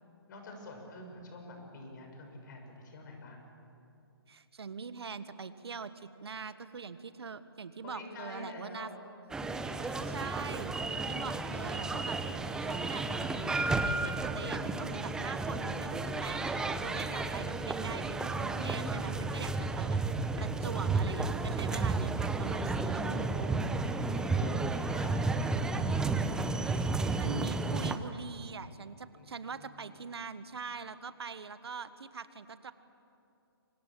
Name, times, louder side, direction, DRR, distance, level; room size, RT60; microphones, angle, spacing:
voice 1, 0.3-3.4 7.8-9.0 16.5-17.3 19.6-20.1 22.2-22.8 24.0-24.1 24.4-25.6 29.1-29.8, left 2 dB, 45° left, 3 dB, 6.9 m, -47 dB
voice 2, 4.3-8.9 9.4-9.5 9.8-12.2 12.6-13.0 13.4-20.0 20.4-23.7 27.2-32.7, right 5 dB, 75° right, 12 dB, 1.5 m, -43 dB
sound 1, 9.3-28.0, right 3 dB, 5° right, 0.8 m, -32 dB
27.0 x 24.5 x 7.7 m, 2.7 s
hypercardioid pair, 145°, 13 cm